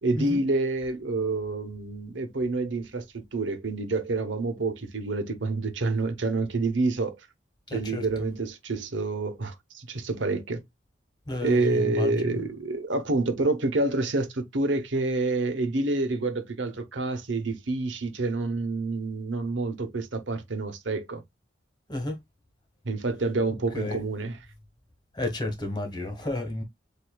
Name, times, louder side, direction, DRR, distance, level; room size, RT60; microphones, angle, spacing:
voice 1, 0.0-3.0 3.3-7.2 7.7-10.6 11.4-21.2 22.8-24.4, right 3 dB, 85° right, 1.0 m, -28 dB
voice 2, 7.7-8.3 11.3-12.4 21.9-22.2 23.7-24.0 25.1-26.6, left 1 dB, 25° left, 1.5 m, -32 dB
8.0 x 2.7 x 2.3 m
head